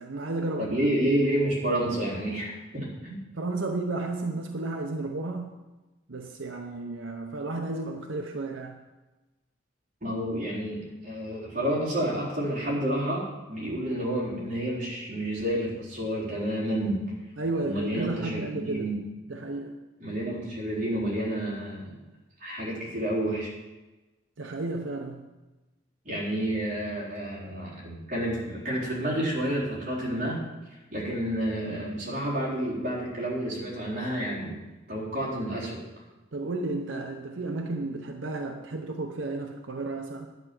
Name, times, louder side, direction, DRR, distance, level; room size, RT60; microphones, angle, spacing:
voice 1, 0.0-0.8 3.3-5.6 6.1-8.8 17.4-18.9 19.3-19.8 24.4-25.3 36.3-40.3, right 2 dB, 85° right, 3 dB, 0.8 m, -33 dB
voice 2, 0.6-3.2 10.0-17.1 17.6-19.0 20.0-21.9 22.4-23.5 26.0-30.4 30.9-34.6 34.9-35.8, right 1 dB, 40° right, -6 dB, 4.0 m, -29 dB
10.5 x 7.8 x 6.0 m, 1.1 s
head